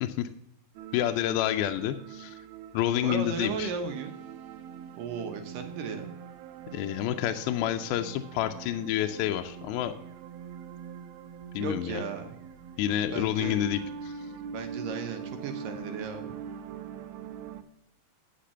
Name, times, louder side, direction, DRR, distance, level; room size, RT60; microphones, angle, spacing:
sound 1, 0.8-17.6, right 7 dB, 85° right, 2.6 m, -43 dB
voice 1, 0.9-2.4 2.7-3.7 6.7-9.9 11.5-12.0 12.8-14.3, left 12 dB, 80° left, 7 dB, 2.3 m, -29 dB
voice 2, 3.0-4.1 5.0-6.1 11.6-12.3 13.1-13.6 14.5-16.3, right 5 dB, 70° right, 5 dB, 2.3 m, -35 dB
10.0 x 5.9 x 5.6 m, 0.83 s
omnidirectional pair, 4.4 m